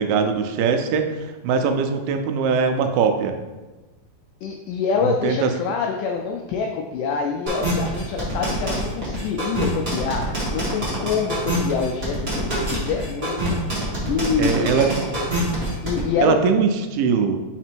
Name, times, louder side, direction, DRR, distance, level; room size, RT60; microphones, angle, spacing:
voice 1, 0.0-3.4 5.2-5.5 14.4-14.9 16.2-17.4, right 6 dB, 85° right, 6 dB, 2.4 m, -21 dB
voice 2, 4.4-14.8 15.8-16.4, left 6 dB, 85° left, 2 dB, 1.8 m, -26 dB
sound 1, 7.5-16.0, right 1 dB, 65° right, 0.6 m, -25 dB
5.1 x 4.1 x 4.5 m, 1.2 s
omnidirectional pair, 4.2 m